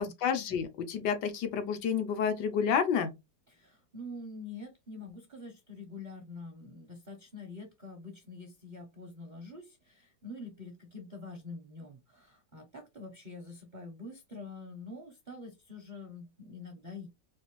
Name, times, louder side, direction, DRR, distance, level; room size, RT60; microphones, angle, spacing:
voice 1, 0.0-3.1, left 7 dB, 80° left, 1.3 m, -30 dB
voice 2, 3.5-17.1, left 3 dB, 50° right, 0.6 m, -46 dB
4.2 x 2.5 x 3.1 m
omnidirectional pair, 1.9 m